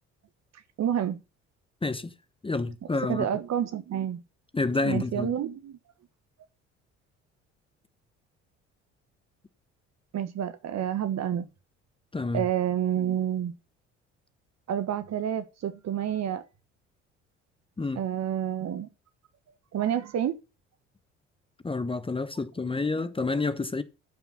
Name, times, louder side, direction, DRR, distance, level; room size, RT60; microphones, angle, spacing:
voice 1, 0.8-1.2 3.1-4.2 4.8-5.8 10.1-11.5 12.3-13.5 14.7-16.4 18.0-18.9 19.7-20.4, right 10 dB, 45° right, 1.5 m, -29 dB
voice 2, 1.8-2.1 2.4-3.3 4.5-5.3 12.1-12.5 17.8-18.0 21.6-23.8, left 3 dB, 15° left, 1.0 m, -29 dB
12.5 x 5.9 x 5.6 m
figure-of-eight pair, 55°, 36 cm